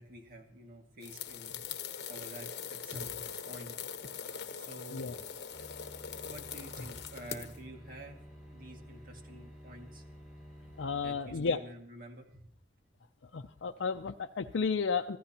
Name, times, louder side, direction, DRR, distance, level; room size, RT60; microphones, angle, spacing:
voice 1, 0.0-1.6 2.1-3.8 4.5-5.1 6.2-8.2 8.5-10.0 10.9-12.4, right 1 dB, 50° right, 2 dB, 2.0 m, -49 dB
sound 1, 1.0-7.6, left 7 dB, 65° left, 1.0 m, -42 dB
sound 2, 5.0-11.1, equal, ahead, 6.4 m, -51 dB
voice 2, 10.8-11.6 13.3-15.2, left 5 dB, 90° left, 4 dB, 0.5 m, -32 dB
24.5 x 15.0 x 2.9 m, 0.69 s
head